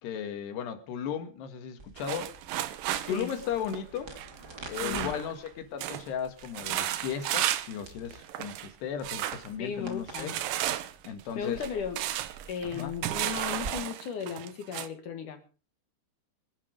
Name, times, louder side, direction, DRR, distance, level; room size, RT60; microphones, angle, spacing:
voice 1, 0.0-2.3 3.1-4.1 4.7-10.4 11.0-11.6 12.7-13.0, left 8 dB, 80° left, 3.8 m, -35 dB
sound 1, 1.8-13.7, right 3 dB, 30° right, 2.5 m, -48 dB
sound 2, 2.0-5.5 5.8-6.1 6.4-7.8 8.1-8.7 9.0-9.5 10.1-14.9, right 13 dB, 75° right, 2.3 m, -33 dB
voice 2, 4.8-5.1 9.6-10.3 11.4-12.1 12.5-15.5, left 7 dB, 60° left, 2.6 m, -36 dB
25.0 x 8.7 x 5.1 m
omnidirectional pair, 4.8 m